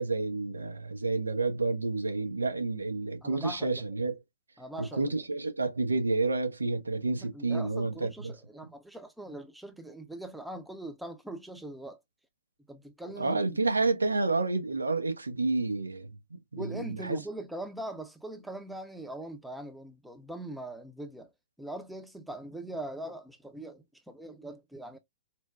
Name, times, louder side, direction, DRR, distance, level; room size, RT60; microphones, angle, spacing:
voice 1, 0.0-4.2 4.8-8.3 13.2-17.2, right 3 dB, 75° right, 0.9 m, -30 dB
voice 2, 3.2-3.8 4.6-5.3 7.2-12.0 12.7-13.4 16.6-21.3 21.6-25.0, right 1 dB, 5° right, 0.6 m, -41 dB
4.3 x 2.2 x 2.3 m
figure-of-eight pair, 105°, 0 cm